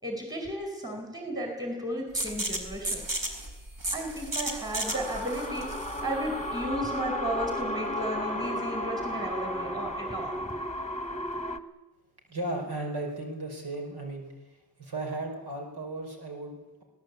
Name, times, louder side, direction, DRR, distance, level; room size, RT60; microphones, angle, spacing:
voice 1, 0.0-3.0 3.9-10.6, right 1 dB, 10° right, 3 dB, 5.0 m, -34 dB
sound 1, 2.1-7.6, right 1 dB, 55° right, 4.3 m, -35 dB
sound 2, 4.8-11.6, equal, 15° left, 1.3 m, -34 dB
voice 2, 12.3-16.8, right 2 dB, 80° right, 2 dB, 5.4 m, -36 dB
24.5 x 18.0 x 8.5 m, 1.1 s
wide cardioid pair, 105°, 39 cm